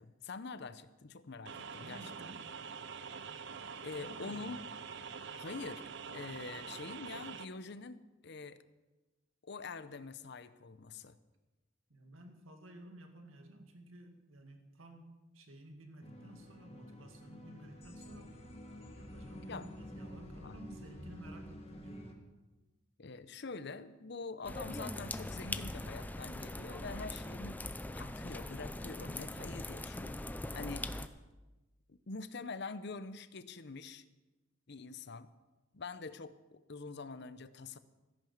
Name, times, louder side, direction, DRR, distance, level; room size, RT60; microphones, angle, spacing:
voice 1, 0.0-2.1 3.8-4.6 5.3-5.8 6.1-8.6 9.4-11.2 19.5-19.7 20.4-20.6 23.0-27.6 28.0-30.2 30.5-30.9 31.9-34.0 34.7-35.3 35.7-37.8, left 4 dB, 55° left, 14 dB, 0.7 m, -45 dB
sound 1, 1.5-7.5, right 6 dB, 60° right, 0.7 m, -45 dB
voice 2, 1.8-2.6 3.9-4.5 11.9-18.3 19.0-22.1, right 1 dB, 80° right, 5 dB, 2.1 m, -54 dB
sound 2, 16.0-22.1, equal, 30° left, 1.8 m, -49 dB
sound 3, 24.4-31.1, left 1 dB, 10° left, 0.5 m, -41 dB
14.0 x 10.5 x 7.2 m, 1.1 s
head